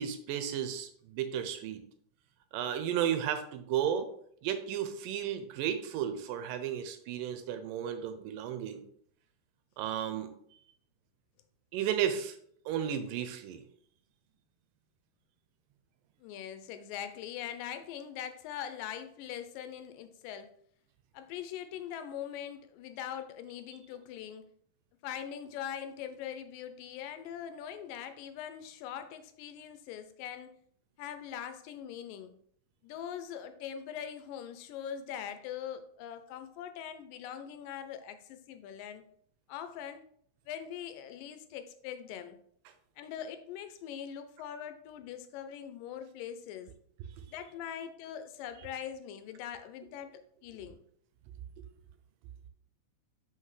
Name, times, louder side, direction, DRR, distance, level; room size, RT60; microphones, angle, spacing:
voice 1, 0.0-1.8 2.5-4.1 4.4-8.8 9.8-10.3 11.7-12.4 12.7-13.6, right 9 dB, 85° right, 9 dB, 2.3 m, -33 dB
voice 2, 16.2-20.5 21.1-24.5 25.0-30.5 31.0-32.3 32.8-39.0 39.5-40.0 40.5-42.4 43.0-46.7 47.3-50.1 50.4-50.8, left 9 dB, 85° left, 9 dB, 2.2 m, -42 dB
5.6 x 5.3 x 3.2 m, 0.63 s
omnidirectional pair, 3.9 m